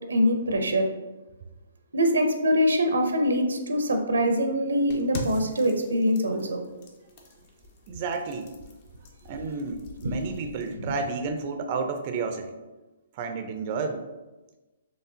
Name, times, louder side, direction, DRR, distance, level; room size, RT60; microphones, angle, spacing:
voice 1, 0.1-0.9 1.9-6.6 10.0-10.1, equal, 85° right, 5 dB, 0.6 m, -23 dB
sound 1, 4.9-10.7, left 2 dB, 45° left, 0.7 m, -43 dB
voice 2, 7.9-8.5 9.2-12.6 13.1-14.1, right 4 dB, 40° right, 6 dB, 0.4 m, -31 dB
4.7 x 3.1 x 2.7 m, 1.1 s
hypercardioid pair, 135°, 0 cm